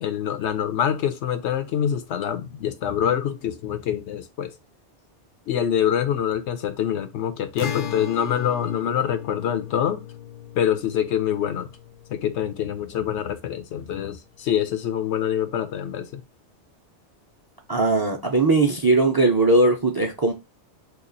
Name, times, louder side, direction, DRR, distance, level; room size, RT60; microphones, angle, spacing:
voice 1, 0.0-4.5 5.5-10.0 10.6-11.7 12.1-16.2, left 9 dB, 90° left, 0.9 m, -25 dB
Acoustic guitar, 7.6-13.1, left 9 dB, 60° left, 0.6 m, -36 dB
voice 2, 17.7-20.3, right 2 dB, 40° right, 0.3 m, -19 dB
2.9 x 2.4 x 3.8 m
omnidirectional pair, 1.1 m